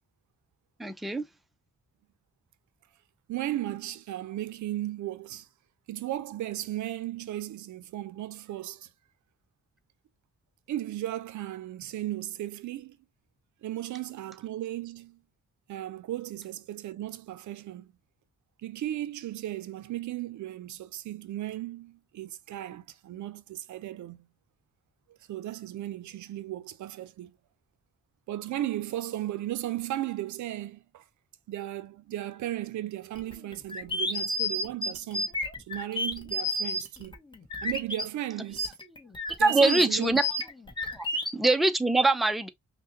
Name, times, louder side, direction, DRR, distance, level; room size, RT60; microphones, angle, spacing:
voice 1, 0.8-1.2 39.4-40.2 41.0-41.1 41.3-42.5, right 2 dB, ahead, 0.4 m, -23 dB
voice 2, 3.3-5.5 5.9-8.9 10.7-13.0 13.6-15.2 15.7-17.9 18.6-24.3 25.1-27.4 28.3-31.0 31.5-35.4 35.7-37.1 37.6-38.7 39.4-40.2, right 13 dB, 85° right, 0.5 m, -35 dB
sound 1, 33.2-38.0 38.5-41.3, left 1 dB, 15° left, 1.1 m, -31 dB
5.6 x 2.2 x 2.7 m
wide cardioid pair, 115°, 29 cm